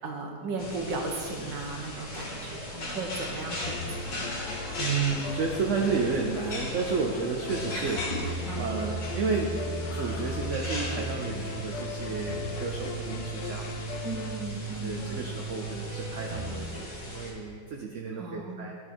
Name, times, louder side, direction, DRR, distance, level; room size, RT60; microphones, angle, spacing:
voice 1, 0.0-4.3 7.7-8.7 14.0-15.4 18.2-18.8, right 3 dB, 80° right, 0 dB, 1.8 m, -36 dB
sound 1, 0.6-17.3, left 1 dB, 45° left, 1.8 m, -38 dB
sound 2, 3.4-14.5, left 5 dB, 85° left, 1.3 m, -40 dB
voice 2, 4.8-8.0 8.6-9.5 9.9-13.7 14.8-18.8, right 5 dB, 65° right, 1 dB, 0.7 m, -31 dB
sound 3, 8.2-16.7, right 3 dB, 25° right, 0.9 m, -37 dB
12.5 x 4.4 x 4.3 m, 2.1 s
omnidirectional pair, 1.9 m